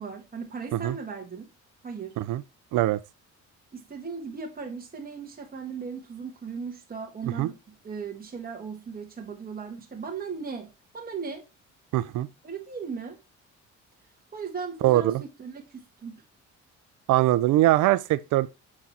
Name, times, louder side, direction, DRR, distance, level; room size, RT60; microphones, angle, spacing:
voice 1, 0.0-1.5 1.8-2.2 3.7-11.4 12.4-13.2 14.3-16.2, right 5 dB, 30° right, 1.7 m, -37 dB
voice 2, 11.9-12.3 14.8-15.2 17.1-18.5, right 15 dB, 85° right, 0.5 m, -22 dB
7.3 x 3.9 x 4.1 m
cardioid pair, 90°, 30 cm